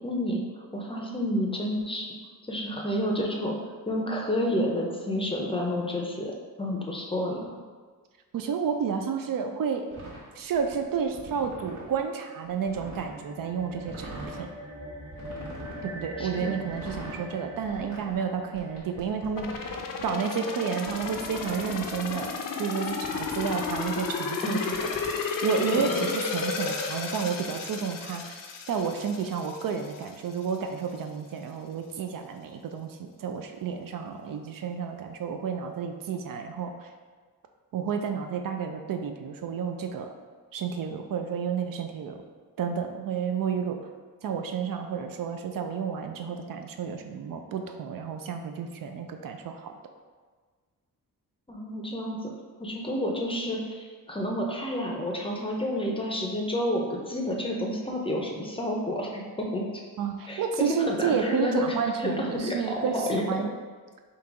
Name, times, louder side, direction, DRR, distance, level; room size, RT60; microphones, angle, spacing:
voice 1, 0.0-0.4 0.7-2.1 2.4-3.6 3.9-7.4 16.2-16.5 24.4-24.6 25.7-26.1 51.5-52.3 52.6-59.6 60.3-60.4 60.9-61.7 62.0-63.4, left 1 dB, 15° left, -1 dB, 0.5 m, -30 dB
voice 2, 8.3-10.0 10.3-14.5 15.8-24.9 25.2-28.4 28.7-36.9 37.7-40.1 40.5-42.2 42.6-43.8 44.2-49.7 60.0-63.5, right 6 dB, 70° right, 5 dB, 0.5 m, -31 dB
sound 1, 9.9-12.0 12.4-13.1 13.7-14.5 15.1-15.9 16.6-17.3 17.6-20.1 20.9-22.3 22.8-24.1 24.7-25.1, right 2 dB, 90° right, 1.3 m, -44 dB
Steel Glass, 12.8-19.4, left 1 dB, 50° right, 1.2 m, -43 dB
sound 2, 19.4-30.1 30.5-30.6, left 5 dB, 65° left, 0.5 m, -33 dB
3.9 x 2.8 x 4.6 m, 1.5 s
wide cardioid pair, 145°, 35 cm